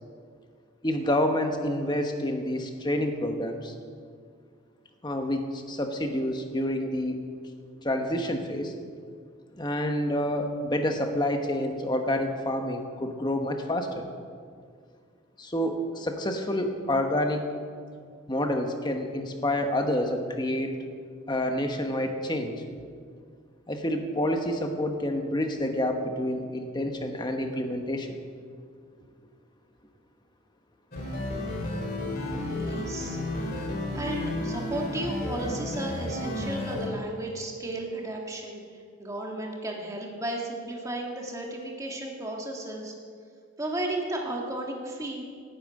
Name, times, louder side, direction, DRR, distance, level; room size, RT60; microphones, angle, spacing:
voice 1, 0.8-3.7 5.0-7.2 7.8-8.7 9.6-14.1 15.4-17.5 18.3-20.8 21.3-22.6 23.7-28.1, left 1 dB, 20° left, 4 dB, 1.2 m, -28 dB
sound 1, 30.9-36.9, left 1 dB, 45° left, 2.7 m, -32 dB
voice 2, 32.5-33.2 33.5-42.9 43.6-45.2, right 1 dB, 15° right, -1 dB, 1.9 m, -34 dB
11.5 x 9.0 x 9.2 m, 2.1 s
head